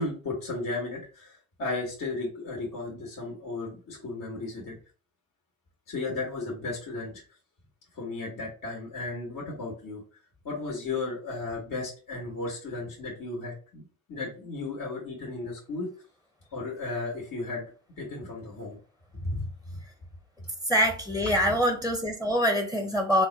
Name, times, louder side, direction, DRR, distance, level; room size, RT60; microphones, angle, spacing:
voice 1, 0.0-4.7 5.9-7.2 7.9-10.0 10.4-15.9 16.5-17.6 18.0-18.8 19.2-19.5 20.4-20.5, left 3 dB, 65° left, -2 dB, 1.4 m, -34 dB
voice 2, 20.7-23.3, equal, 5° left, 3 dB, 0.7 m, -24 dB
3.9 x 2.2 x 3.9 m, 0.37 s
supercardioid pair, 70°, 35 cm